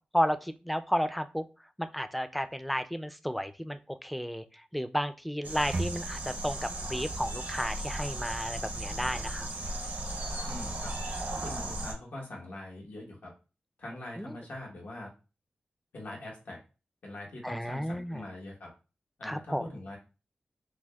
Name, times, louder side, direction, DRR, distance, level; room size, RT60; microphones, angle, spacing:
voice 1, 0.1-1.5 1.8-4.4 4.7-9.5 14.2-14.4 17.4-18.2 19.2-19.6, equal, ahead, 10 dB, 0.3 m, -32 dB
sound 1, 5.4-11.9, right 2 dB, 70° right, 0.6 m, -36 dB
voice 2, 10.4-10.9 11.3-13.3 13.8-15.1 15.9-16.6 17.0-18.7 19.2-20.0, left 1 dB, 90° left, -2 dB, 1.0 m, -43 dB
6.0 x 2.0 x 2.2 m, 0.32 s
wide cardioid pair, 75°, 3 cm